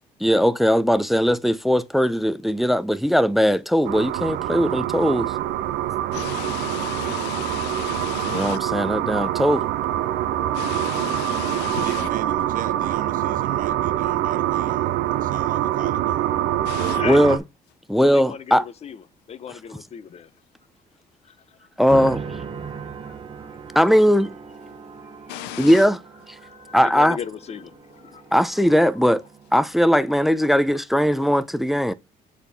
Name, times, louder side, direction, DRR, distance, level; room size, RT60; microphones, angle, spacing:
voice 1, 0.2-5.3 8.3-9.7 17.0-17.4 17.9-18.6 21.8-22.2 23.8-24.3 25.6-26.0 26.7-27.2 28.3-29.2 29.5-31.9, equal, ahead, 0.4 m, -19 dB
sound 1, 3.8-17.4, right 13 dB, 80° right, 0.5 m, -25 dB
voice 2, 6.1-8.6 10.5-12.1 16.7-17.0 25.3-25.7, left 14 dB, 90° left, 0.5 m, -34 dB
voice 3, 11.7-16.3 16.6-17.3, right 9 dB, 55° right, 0.8 m, -38 dB
voice 4, 17.0-17.4 18.0-19.0 19.3-20.3 21.2-21.7 22.6-22.7 23.1-23.2 23.5-23.6 26.4-28.2 29.8-29.9, left 8 dB, 40° left, 0.6 m, -36 dB
sound 2, 21.9-30.3, right 6 dB, 30° right, 1.0 m, -38 dB
7.8 x 4.2 x 3.4 m
cardioid pair, 110°, 17 cm